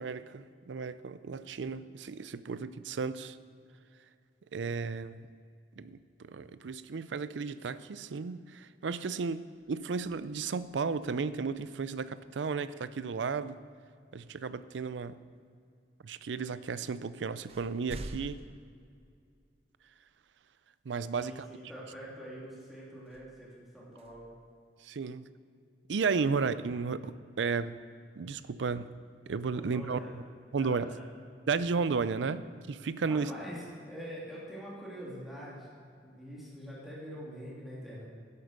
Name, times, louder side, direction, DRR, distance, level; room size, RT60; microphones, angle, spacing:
voice 1, 0.0-3.4 4.5-5.3 5.8-13.6 14.1-15.2 16.0-18.4 20.9-21.5 24.8-25.3 25.9-27.8 28.2-28.9 29.3-30.2 30.5-30.9 31.5-33.3, right 5 dB, 80° right, 15 dB, 0.5 m, -34 dB
sound 1, 9.5-11.6 13.8-13.9 14.8-15.5 16.4-16.5 16.9-19.7 20.3-20.4 23.0-25.2, right 1 dB, 35° right, 0.6 m, -50 dB
voice 2, 21.1-24.3 29.5-30.1 30.6-31.0 33.0-35.7 36.0-38.0, equal, ahead, -7 dB, 2.7 m, -44 dB
11.0 x 8.1 x 6.5 m, 2.4 s
head